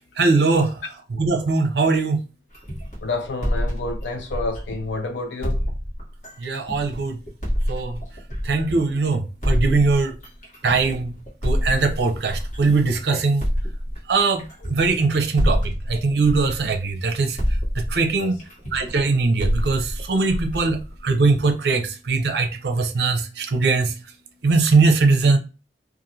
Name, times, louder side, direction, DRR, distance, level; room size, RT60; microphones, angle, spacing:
voice 1, 0.2-0.7 1.1-2.2 6.4-7.2 7.7-8.0 8.4-10.1 10.6-11.2 11.4-13.5 14.1-14.4 14.7-17.4 17.8-18.4 18.7-23.9 24.4-25.4, right 3 dB, 65° right, 0.5 m, -21 dB
sound 1, 2.5-5.0 5.4-8.9 9.4-13.0 13.4-17.1 17.4-21.5, equal, 45° left, 1.3 m, -27 dB
voice 2, 3.0-5.6 14.6-14.7 18.2-18.3 20.5-20.7, left 3 dB, 75° left, 0.5 m, -29 dB
3.0 x 2.4 x 2.6 m
head